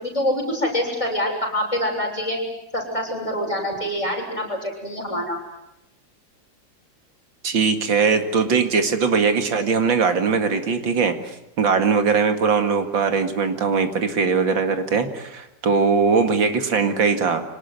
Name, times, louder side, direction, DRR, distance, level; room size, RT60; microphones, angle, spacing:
voice 1, 0.0-2.4 2.7-5.4, left 1 dB, 15° left, 0 dB, 7.0 m, -25 dB
voice 2, 7.4-17.4, right 5 dB, 80° right, 7 dB, 2.8 m, -20 dB
26.0 x 19.0 x 9.5 m, 0.87 s
omnidirectional pair, 2.0 m